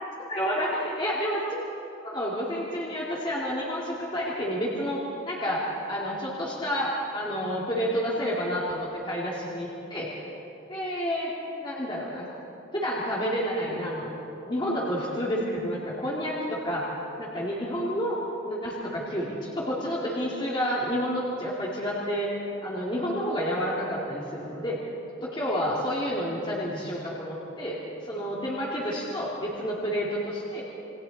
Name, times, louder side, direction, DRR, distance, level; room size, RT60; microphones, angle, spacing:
voice 1, 0.3-1.4 2.0-5.0 5.2-10.2 10.7-11.3 11.6-12.3 12.7-14.1 14.5-16.9 17.2-18.2 18.5-24.8 25.2-27.8 28.1-30.6, equal, 25° left, -6 dB, 2.8 m, -29 dB
28.5 x 23.0 x 4.3 m, 2.9 s
head